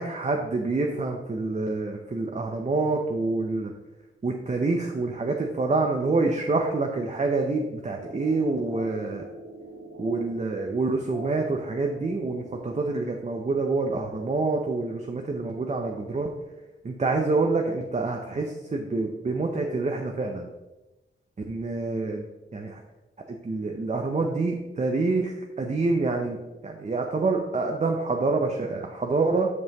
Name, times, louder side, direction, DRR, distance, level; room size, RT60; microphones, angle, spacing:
voice 1, 0.0-3.7 4.2-9.2 10.0-16.3 16.8-20.5 21.5-22.2 22.5-22.8 23.3-29.5, right 3 dB, 35° right, 2 dB, 0.6 m, -27 dB
sound 1, 8.0-13.5, right 2 dB, 80° right, 1.5 m, -43 dB
9.4 x 5.4 x 3.0 m, 1.0 s
wide cardioid pair, 105°, 21 cm